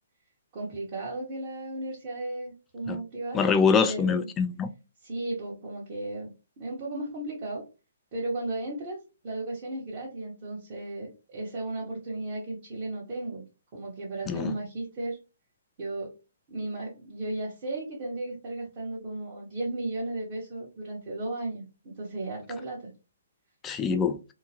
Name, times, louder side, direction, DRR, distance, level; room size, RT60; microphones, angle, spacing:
voice 1, 0.5-3.5 3.8-4.3 5.0-6.3 6.6-7.6 8.1-9.0 9.2-13.4 13.7-15.2 15.8-16.1 16.5-22.9, right 2 dB, 40° right, 1.1 m, -35 dB
voice 2, 3.3-4.7 14.3-14.5 23.6-24.2, left 5 dB, 15° left, 0.3 m, -24 dB
2.9 x 2.2 x 2.8 m
figure-of-eight pair, 135°, 0 cm